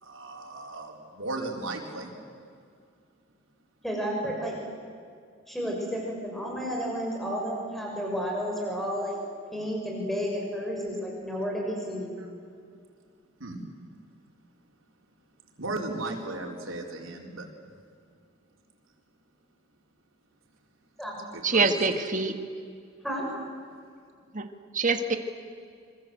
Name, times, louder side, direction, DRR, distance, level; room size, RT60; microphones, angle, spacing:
voice 1, 0.0-2.1 12.2-12.3 13.4-13.6 15.6-17.5 21.3-21.8, right 2 dB, 90° right, 0 dB, 4.7 m, -36 dB
voice 2, 3.8-4.6 5.5-9.2 9.5-12.2 21.0-21.1 23.0-23.3, equal, ahead, -1 dB, 6.1 m, -31 dB
voice 3, 21.4-22.3 24.3-24.5 24.7-25.2, right 4 dB, 40° right, 7 dB, 1.8 m, -24 dB
26.0 x 25.5 x 8.0 m, 2.2 s
head